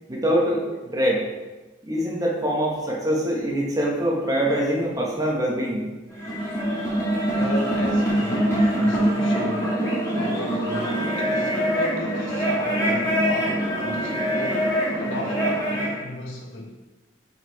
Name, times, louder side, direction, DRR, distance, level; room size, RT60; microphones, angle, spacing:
voice 1, 0.1-1.2 1.8-5.9, equal, 20° right, -2 dB, 1.1 m, -24 dB
sound 1, 6.1-15.9, equal, 15° left, 1.7 m, -24 dB
voice 2, 7.1-9.8 10.1-16.7, left 1 dB, 85° left, 1 dB, 1.0 m, -35 dB
4.9 x 4.5 x 4.6 m, 1.2 s
head